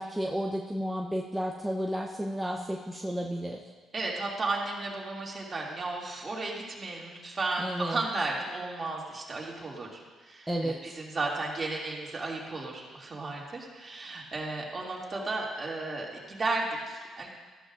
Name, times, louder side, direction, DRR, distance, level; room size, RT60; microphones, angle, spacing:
voice 1, 0.0-3.6 7.6-8.0 10.5-10.8, equal, 5° right, -1 dB, 0.9 m, -32 dB
voice 2, 3.9-17.3, right 2 dB, 35° right, -2 dB, 2.5 m, -34 dB
13.5 x 11.5 x 2.6 m, 1.4 s
supercardioid pair, 65°, 0 cm